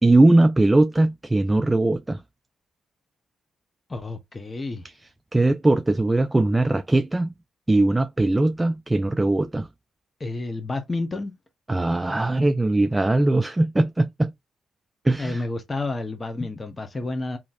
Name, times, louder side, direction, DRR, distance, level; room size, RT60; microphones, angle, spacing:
voice 1, 0.0-2.2 5.3-7.3 7.7-9.7 11.7-14.3 15.0-15.4, right 2 dB, 15° right, 0.4 m, -20 dB
voice 2, 3.9-4.8 10.2-11.3 15.2-17.4, left 2 dB, 25° left, 0.8 m, -30 dB
4.0 x 2.9 x 2.5 m
cardioid pair, 90°, 0 cm